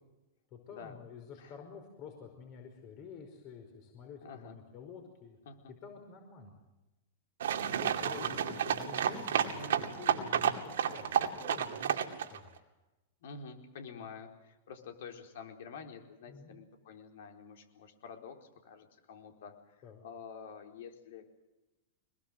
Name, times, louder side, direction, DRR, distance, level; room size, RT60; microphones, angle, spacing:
voice 1, 0.5-5.4 5.8-6.6 7.7-9.6 10.0-12.6 16.3-16.6 19.8-20.0, left 6 dB, 45° left, 4 dB, 5.3 m, -49 dB
voice 2, 4.2-4.6 5.4-5.7 8.1-8.8 9.5-9.9 13.2-19.8 20.0-21.4, left 5 dB, 70° left, 5 dB, 4.4 m, -49 dB
sound 1, 7.4-12.4, right 9 dB, 80° right, 2.5 m, -31 dB
24.5 x 21.5 x 7.9 m, 1.0 s
hypercardioid pair, 115°, 0 cm